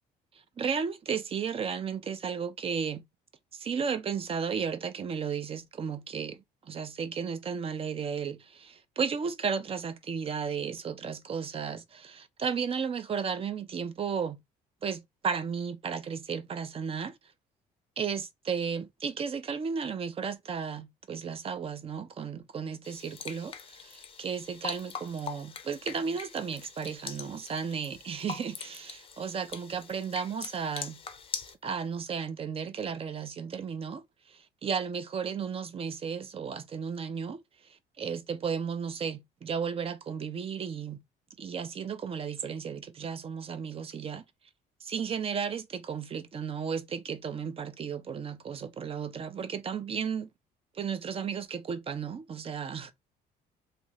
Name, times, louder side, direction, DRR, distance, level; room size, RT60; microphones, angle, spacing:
voice 1, 0.6-3.0 3.5-6.4 6.7-14.4 14.8-17.2 18.0-31.0 31.6-37.4 38.0-41.0 41.4-44.2 44.8-50.3 50.7-52.9, right 6 dB, 35° right, 0.5 m, -34 dB
sound 1, 22.8-31.5, left 6 dB, 35° left, 0.5 m, -43 dB
2.8 x 2.4 x 3.1 m
cardioid pair, 110°, 17 cm